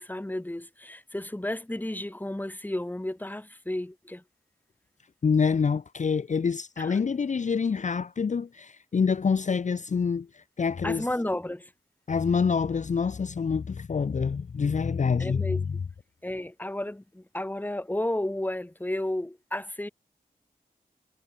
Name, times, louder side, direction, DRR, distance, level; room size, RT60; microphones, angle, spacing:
voice 1, 0.0-4.2 6.8-7.0 10.8-11.7 15.2-15.6 16.2-19.9, left 1 dB, 10° left, 1.4 m, -32 dB
voice 2, 5.2-11.1 12.1-15.5, left 5 dB, 50° left, 0.6 m, -26 dB
wide cardioid pair, 70°, 16 cm